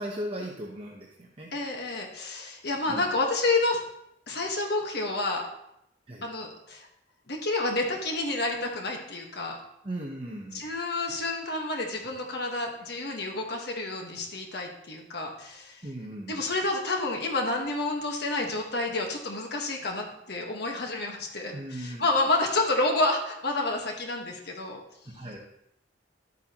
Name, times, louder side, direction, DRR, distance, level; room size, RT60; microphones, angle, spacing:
voice 1, 0.0-1.5 2.9-3.1 6.1-6.3 9.8-10.7 15.8-16.4 21.5-22.0 25.1-25.4, right 1 dB, 30° right, -2 dB, 1.0 m, -37 dB
voice 2, 1.5-3.8 4.3-5.5 6.2-6.9 7.3-9.6 10.5-15.8 16.3-24.8, left 2 dB, 60° left, 1 dB, 1.4 m, -29 dB
12.0 x 8.1 x 3.0 m, 0.78 s
head